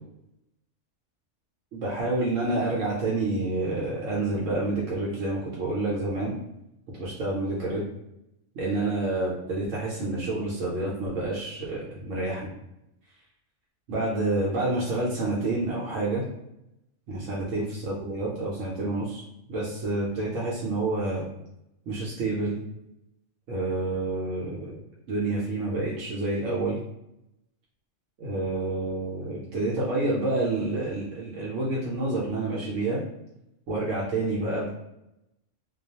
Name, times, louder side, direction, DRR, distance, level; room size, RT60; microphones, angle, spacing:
voice 1, 1.7-6.3 7.0-7.8 8.6-12.5 13.9-16.2 17.1-19.2 19.5-21.2 21.9-22.6 23.5-24.8 25.1-26.8 28.2-33.0 33.7-34.7, right 2 dB, 75° right, -5 dB, 1.0 m, -28 dB
2.3 x 2.2 x 2.7 m, 0.86 s
omnidirectional pair, 1.3 m